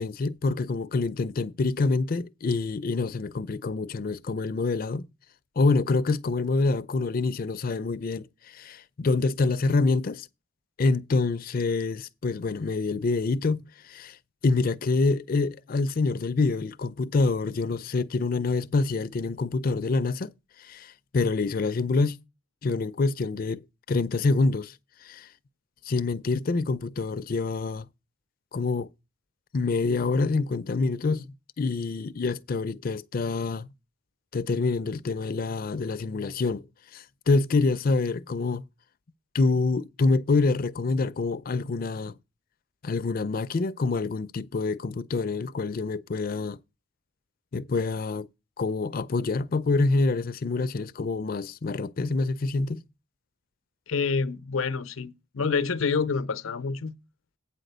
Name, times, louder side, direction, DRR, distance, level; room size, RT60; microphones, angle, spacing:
voice 1, 0.0-5.1 5.6-10.3 10.8-14.2 14.4-20.3 20.6-22.2 22.6-24.7 25.0-25.3 25.9-27.9 28.5-28.9 29.5-33.7 34.3-36.6 36.9-38.7 39.3-42.2 42.8-46.6 47.5-48.3 48.6-52.8, left 3 dB, 45° left, 0.4 m, -26 dB
voice 2, 53.9-57.0, left 5 dB, 90° left, 0.6 m, -27 dB
8.5 x 5.0 x 6.6 m
head